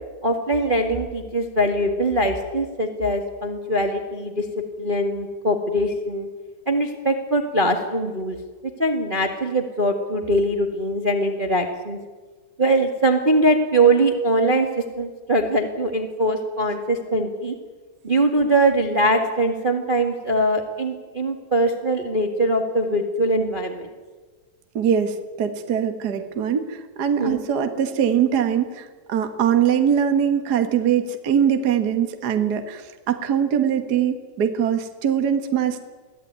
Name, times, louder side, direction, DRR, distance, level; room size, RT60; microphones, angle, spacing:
voice 1, 0.2-4.4 4.8-6.3 6.6-8.4 8.8-12.0 12.6-14.7 15.0-17.5 18.0-23.9 27.2-27.4, right 1 dB, 30° right, 4 dB, 1.0 m, -22 dB
voice 2, 24.7-35.8, right 8 dB, 55° right, 7 dB, 1.1 m, -22 dB
23.5 x 16.0 x 9.5 m, 1.3 s
omnidirectional pair, 4.1 m